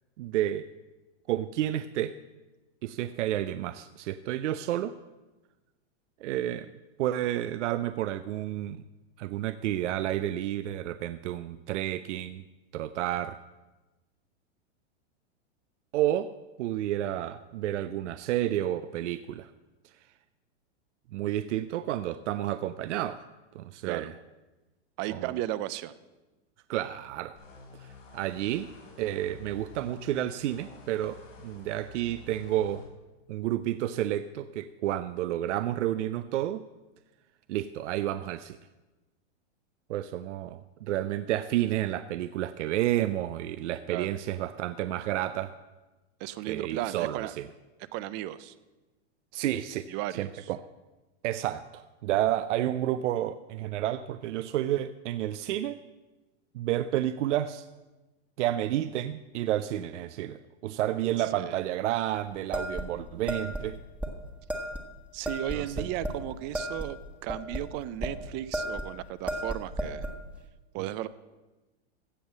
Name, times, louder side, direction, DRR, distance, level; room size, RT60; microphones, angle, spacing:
voice 1, 0.2-0.7 1.3-2.2 2.8-5.0 6.2-6.7 7.0-8.8 9.2-12.4 12.7-13.4 15.9-16.3 16.6-19.5 21.1-23.2 23.5-24.1 25.1-25.3 26.7-27.3 27.8-28.7 29.0-32.8 33.3-36.6 37.5-38.6 39.9-45.5 46.5-47.5 49.3-49.9 50.2-50.6 51.2-55.8 56.5-57.6 58.4-63.8 65.5-65.8, right 13 dB, 75° right, 13 dB, 0.6 m, -30 dB
voice 2, 25.0-25.9 43.9-44.1 46.2-47.3 47.9-48.5 49.9-50.5 61.3-61.6 65.1-70.1 70.7-71.1, right 14 dB, 30° right, 17 dB, 0.4 m, -35 dB
sound 1, 27.3-32.9, left 3 dB, 90° left, 3.7 m, -49 dB
sound 2, 62.5-63.7 64.0-64.1 64.5-64.8 65.2-66.2 66.5-68.1 68.5-68.9 69.3-70.2, equal, 5° right, 1.3 m, -33 dB
15.5 x 5.5 x 7.5 m, 1.1 s
hypercardioid pair, 130°, 36 cm